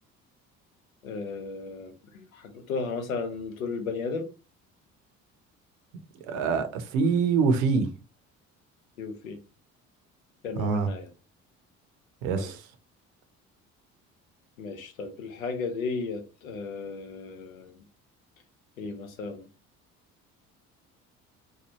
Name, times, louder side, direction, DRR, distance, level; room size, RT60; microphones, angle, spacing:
voice 1, 1.0-4.3 9.0-9.4 10.4-11.1 12.4-12.5 14.6-17.7 18.8-19.5, left 4 dB, 90° left, 0.7 m, -34 dB
voice 2, 6.3-7.9 10.6-10.9 12.2-12.6, right 5 dB, 75° right, 0.7 m, -25 dB
3.1 x 2.2 x 2.9 m
hypercardioid pair, 55°, 40 cm